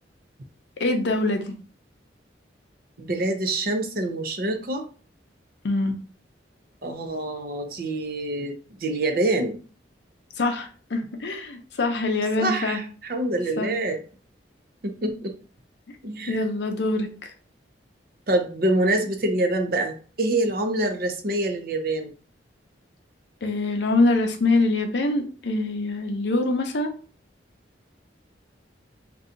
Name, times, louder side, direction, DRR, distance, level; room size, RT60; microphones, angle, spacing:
voice 1, 0.8-1.5 5.6-6.0 10.4-12.8 13.6-13.7 16.3-17.3 23.4-26.9, left 2 dB, 70° left, 5 dB, 0.6 m, -24 dB
voice 2, 3.0-4.8 6.8-9.6 12.4-14.0 14.8-15.3 16.0-16.5 18.3-22.1, right 1 dB, 50° right, 5 dB, 0.6 m, -26 dB
2.7 x 2.3 x 3.7 m, 0.39 s
head